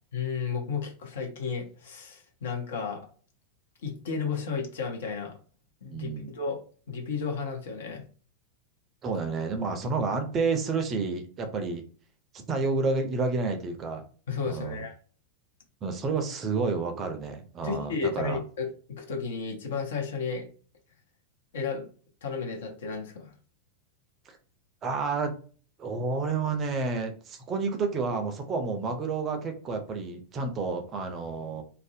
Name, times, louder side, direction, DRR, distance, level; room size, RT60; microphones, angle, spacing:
voice 1, 0.1-3.0 3.8-5.4 5.8-6.6 6.9-8.0 14.3-14.9 17.6-18.7 19.0-20.5 21.5-21.9 22.2-23.3, left 5 dB, 60° left, 2 dB, 0.6 m, -33 dB
voice 2, 5.9-6.3 9.0-11.8 12.3-14.0 14.5-14.8 15.8-18.4 24.3-24.4 24.8-25.3 25.8-31.6, right 4 dB, 25° right, 5 dB, 0.5 m, -30 dB
2.5 x 2.0 x 2.6 m, 0.41 s
figure-of-eight pair, 90°, 0 cm